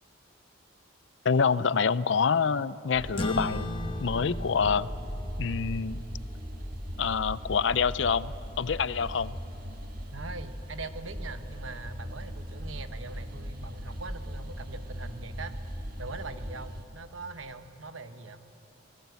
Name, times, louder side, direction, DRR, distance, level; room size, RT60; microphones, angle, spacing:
voice 1, 1.2-3.7 4.0-4.9 5.4-6.0 7.0-9.4, left 6 dB, 65° left, 17 dB, 0.5 m, -26 dB
sound 1, 2.9-16.8, equal, 45° right, 1.9 m, -38 dB
sound 2, 3.2-8.0, left 1 dB, 25° left, 1.2 m, -38 dB
voice 2, 10.1-15.5 16.0-18.4, right 3 dB, 90° right, 9 dB, 1.3 m, -42 dB
28.0 x 18.5 x 8.2 m, 3.0 s
head